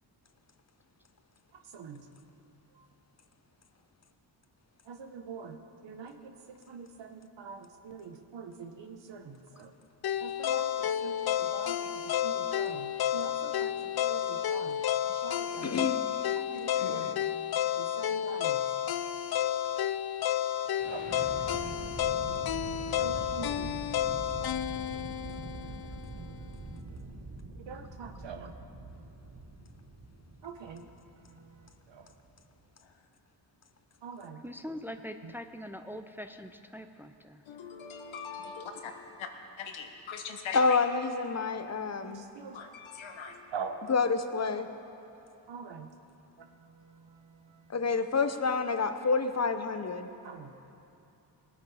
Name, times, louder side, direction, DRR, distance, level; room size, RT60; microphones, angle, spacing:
voice 1, 1.5-2.1 2.7-2.9 4.8-9.7 10.2-15.8 16.3-17.1 17.8-18.7 20.9-21.2 23.0-23.8 24.2-27.0 27.6-28.5 30.4-30.8 31.2-32.2 34.0-34.4 35.2-35.3 42.0-42.6 43.5-43.8 45.5-45.9 46.4-47.8 50.2-50.5, right 6 dB, 65° right, 6 dB, 1.2 m, -45 dB
sound 1, 10.0-26.1, left 10 dB, 55° left, 0.5 m, -31 dB
voice 2, 15.6-16.1 40.5-42.2 43.9-44.7 47.7-50.1, left 4 dB, 35° left, 9 dB, 0.9 m, -28 dB
voice 3, 16.8-17.1 37.5-38.6 39.2-39.3 39.6-40.8 42.5-43.5, left 6 dB, 75° left, 5 dB, 1.3 m, -41 dB
sound 2, 20.8-32.7, right 3 dB, 85° right, 1.9 m, -44 dB
voice 4, 34.4-37.4, equal, 5° right, 8 dB, 0.6 m, -42 dB
19.0 x 8.7 x 4.9 m, 2.8 s
cardioid pair, 60°, 46 cm